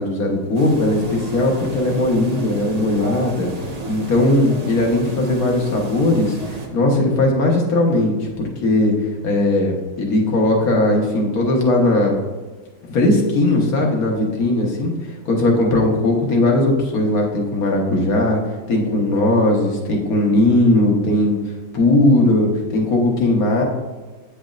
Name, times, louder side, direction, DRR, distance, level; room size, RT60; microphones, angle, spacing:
voice 1, 0.0-3.5 3.9-8.9 9.2-12.2 12.9-18.4 18.7-21.4 21.7-23.6, left 2 dB, 55° left, 0 dB, 1.6 m, -18 dB
sound 1, 0.5-6.7, right 3 dB, 70° right, 0.3 m, -32 dB
8.9 x 5.3 x 2.5 m, 1.3 s
omnidirectional pair, 2.0 m